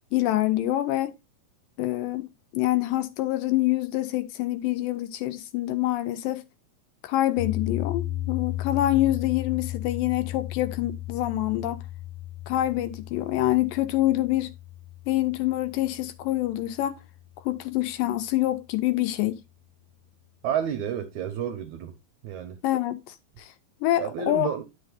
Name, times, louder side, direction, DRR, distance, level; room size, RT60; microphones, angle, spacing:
voice 1, 0.1-1.1 1.8-2.3 2.5-6.5 7.0-11.8 12.5-14.5 15.1-17.0 17.5-19.4 22.6-23.5 23.8-24.5, left 15 dB, 80° left, 2.1 m, -26 dB
sound 1, 7.4-17.6, left 14 dB, 25° left, 1.5 m, -35 dB
voice 2, 20.4-22.0 22.2-22.6 24.0-24.7, right 9 dB, 70° right, 1.8 m, -30 dB
10.5 x 7.6 x 2.4 m
omnidirectional pair, 4.3 m